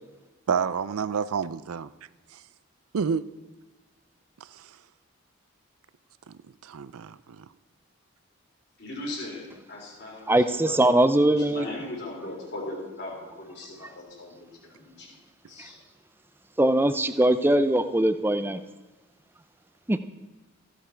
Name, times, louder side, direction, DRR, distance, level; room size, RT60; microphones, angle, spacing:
voice 1, 0.5-1.9 2.3-2.4 2.9-3.3 4.5-4.8 6.3-6.4 6.6-7.5, right 6 dB, 85° right, 16 dB, 0.5 m, -29 dB
voice 2, 8.8-15.1 15.5-15.8, left 2 dB, 50° left, -3 dB, 3.6 m, -39 dB
voice 3, 10.3-11.7 16.6-18.6 19.9-20.0, right 1 dB, 10° right, 11 dB, 0.4 m, -21 dB
15.0 x 8.2 x 4.5 m, 1.2 s
head